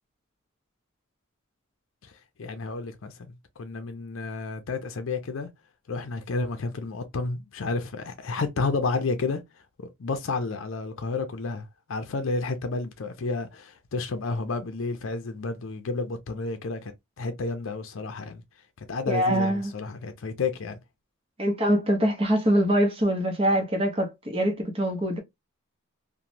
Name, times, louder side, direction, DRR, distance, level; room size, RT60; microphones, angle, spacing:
voice 1, 2.4-5.5 5.9-9.4 9.8-16.9 17.2-18.4 18.8-20.8, left 3 dB, 70° left, 0.5 m, -31 dB
voice 2, 19.1-19.7 21.4-25.2, equal, 25° right, 0.7 m, -24 dB
3.0 x 2.1 x 2.6 m
head